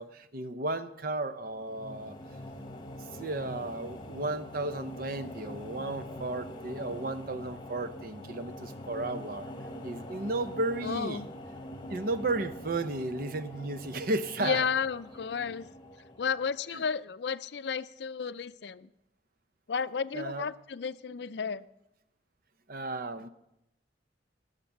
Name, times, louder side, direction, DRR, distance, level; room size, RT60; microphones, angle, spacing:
voice 1, 0.0-2.2 3.1-9.5 9.8-11.2 11.9-14.7 16.7-16.8 20.1-20.5 22.7-23.3, right 2 dB, 50° right, 11 dB, 0.8 m, -34 dB
sound 1, 1.4-16.7, left 1 dB, 25° left, 1.3 m, -44 dB
voice 2, 10.8-11.3 14.4-15.7 16.2-18.9 19.7-21.6, left 6 dB, 65° left, 15 dB, 0.5 m, -32 dB
18.5 x 6.7 x 7.3 m, 0.87 s
head